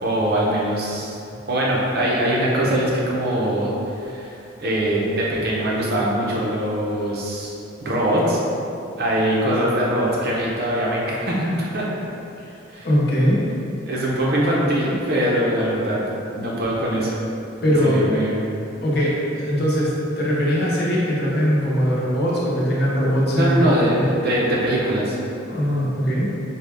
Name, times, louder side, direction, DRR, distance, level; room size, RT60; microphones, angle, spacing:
voice 1, 0.0-1.2 1.5-7.5 7.8-8.4 9.0-11.8 12.7-12.9 13.8-16.0 16.3-17.1 17.6-18.4 23.3-24.0 24.2-25.2, right 1 dB, 50° right, -5 dB, 0.7 m, -22 dB
voice 2, 12.8-13.4 17.6-18.0 18.8-24.1 25.5-26.3, equal, 50° left, -6 dB, 0.8 m, -21 dB
5.2 x 2.3 x 3.4 m, 2.7 s
head